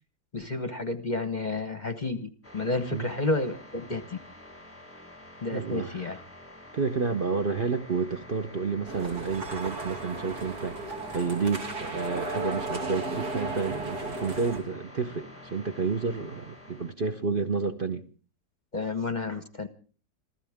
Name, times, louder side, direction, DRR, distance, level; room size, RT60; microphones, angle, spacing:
voice 1, 0.3-4.2 5.4-6.2 18.7-19.7, left 3 dB, 35° left, 1.0 m, -31 dB
sound 1, 2.4-16.9, left 1 dB, 10° left, 1.2 m, -48 dB
voice 2, 5.5-6.2 6.7-18.1, right 4 dB, 40° right, 0.9 m, -30 dB
sound 2, 8.9-14.6, right 2 dB, 70° right, 3.1 m, -35 dB
sound 3, 9.0-14.6, right 2 dB, 85° right, 4.7 m, -50 dB
27.0 x 15.0 x 3.6 m
omnidirectional pair, 1.7 m